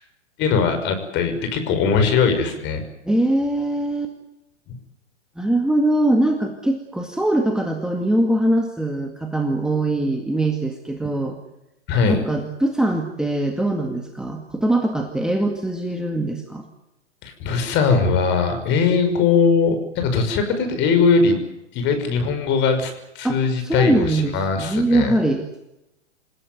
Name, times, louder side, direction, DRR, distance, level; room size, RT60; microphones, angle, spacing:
voice 1, 0.4-2.8 11.9-12.2 17.2-21.4 21.7-25.1, left 5 dB, 30° left, 7 dB, 5.8 m, -20 dB
voice 2, 3.0-4.1 5.4-11.4 12.0-16.7 23.2-25.4, right 1 dB, ahead, 3 dB, 2.1 m, -22 dB
28.0 x 16.0 x 9.6 m, 0.88 s
hypercardioid pair, 125°, 36 cm